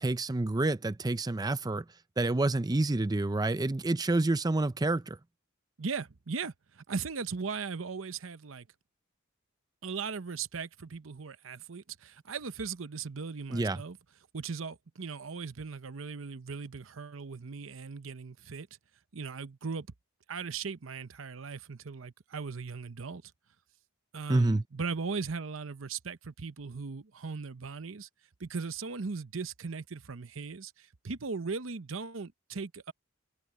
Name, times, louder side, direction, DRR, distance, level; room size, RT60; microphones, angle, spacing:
voice 1, 0.0-1.8 2.2-5.2 13.5-13.8 24.3-24.6, right 2 dB, 20° right, 0.5 m, -28 dB
voice 2, 5.8-8.7 9.8-14.0 14.3-18.7 19.1-19.9 20.3-23.3 24.1-28.1 28.4-32.9, right 5 dB, 80° right, 0.8 m, -38 dB
head